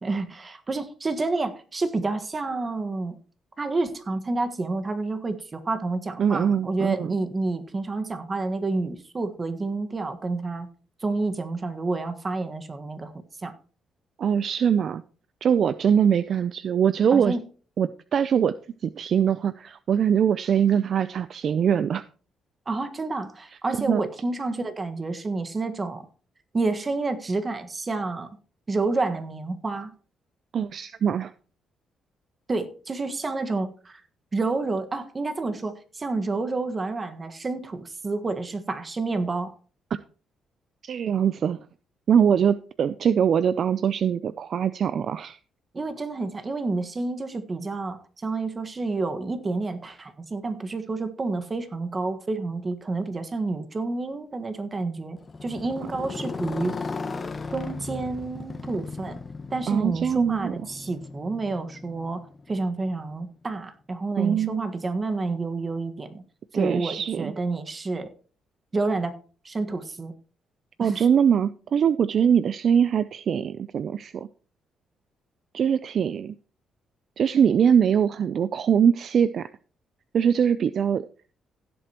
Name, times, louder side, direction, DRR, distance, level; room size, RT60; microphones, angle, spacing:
voice 1, 0.0-3.2 3.6-10.7 11.0-13.1 13.4-13.5 17.1-17.5 22.7-26.1 26.5-28.3 28.7-29.9 32.5-34.0 34.3-39.5 45.7-56.8 57.5-59.2 59.5-66.2 66.5-68.1 68.7-69.1 69.4-70.1 70.8-71.0, right 3 dB, 30° right, 8 dB, 1.5 m, -29 dB
voice 2, 6.2-7.1 14.2-15.0 15.4-17.4 17.8-18.5 18.8-22.0 23.8-24.0 30.5-31.3 40.8-41.6 42.1-45.4 59.7-60.5 64.2-64.7 66.5-67.3 70.8-74.3 75.5-76.3 77.2-79.5 80.1-81.0, right 8 dB, 55° right, 15 dB, 0.4 m, -22 dB
Motorcycle, 55.2-63.2, left 4 dB, 35° left, 1.4 m, -36 dB
16.5 x 7.7 x 3.0 m, 0.39 s
cardioid pair, 90°, 0 cm